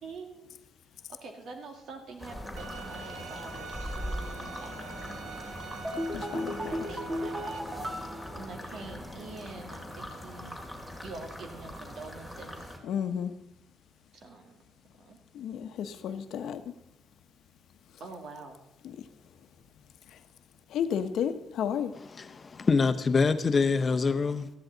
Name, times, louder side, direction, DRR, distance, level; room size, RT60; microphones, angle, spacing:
voice 1, 0.0-0.6 1.1-5.3 6.6-7.3 8.3-10.6 11.0-12.7 14.1-14.6 15.0-15.2 18.0-18.6, right 3 dB, 65° right, 2.0 m, -45 dB
sound 1, 2.2-12.8, equal, 5° right, 2.4 m, -41 dB
Bowed string instrument, 2.6-7.6, right 6 dB, 85° right, 1.3 m, -45 dB
sound 2, 5.8-9.3 9.6-9.7, equal, 20° right, 1.7 m, -36 dB
voice 2, 6.1-6.8 12.8-13.3 15.3-16.7 18.8-19.0 20.7-21.9, left 8 dB, 75° left, 0.9 m, -32 dB
voice 3, 22.1-24.5, left 4 dB, 35° left, 0.8 m, -25 dB
14.0 x 10.5 x 3.9 m
cardioid pair, 90°, 0 cm